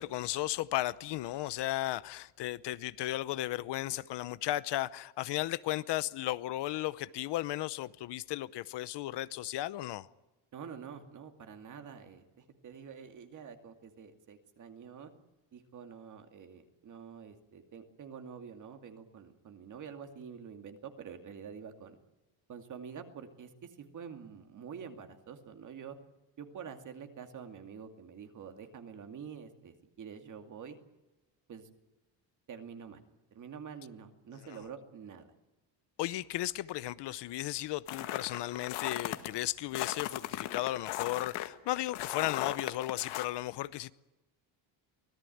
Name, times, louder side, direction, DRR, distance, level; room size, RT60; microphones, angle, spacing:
voice 1, 0.0-10.1 36.0-43.9, left 15 dB, 60° left, 0.8 m, -35 dB
voice 2, 10.5-15.1 15.5-22.0 22.5-26.0 26.4-30.8 31.5-31.7 32.5-33.0 33.3-35.3, right 7 dB, 40° right, 2.4 m, -47 dB
sound 1, 37.9-39.3 39.7-43.3, left 14 dB, 80° left, 1.8 m, -37 dB
25.0 x 18.0 x 9.3 m
cardioid pair, 180°, 47 cm